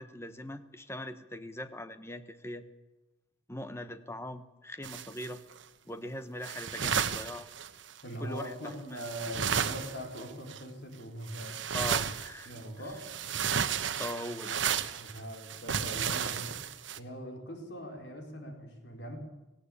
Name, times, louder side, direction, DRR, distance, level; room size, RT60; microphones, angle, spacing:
voice 1, 0.0-2.6 3.5-5.4 5.9-7.5 8.2-8.5 8.9-9.0 11.7-12.5 14.0-14.5 15.0-15.1, left 1 dB, 15° left, 11 dB, 1.1 m, -41 dB
sound 1, 4.8-5.6 6.4-8.0 8.7-8.8 9.0-10.6 11.3-12.6 12.9-17.0, right 7 dB, 75° right, 1.1 m, -33 dB
voice 2, 8.0-11.8 12.4-13.0 15.0-16.6 17.0-19.2, equal, 60° left, 3 dB, 4.3 m, -41 dB
18.5 x 16.5 x 8.6 m, 1.0 s
head